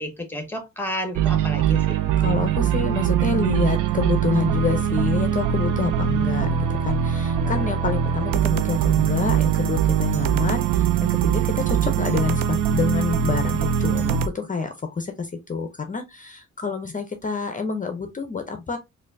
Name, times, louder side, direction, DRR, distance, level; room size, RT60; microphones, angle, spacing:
voice 1, 0.0-2.0 7.4-7.7, left 1 dB, 5° left, 0.8 m, -32 dB
sound 1, 1.2-11.2, right 2 dB, 60° right, 1.3 m, -50 dB
sound 2, 1.2-14.3, right 9 dB, 85° right, 0.5 m, -22 dB
voice 2, 2.2-18.8, left 4 dB, 25° left, 0.5 m, -27 dB
4.2 x 2.6 x 2.5 m
cardioid pair, 130°, 31 cm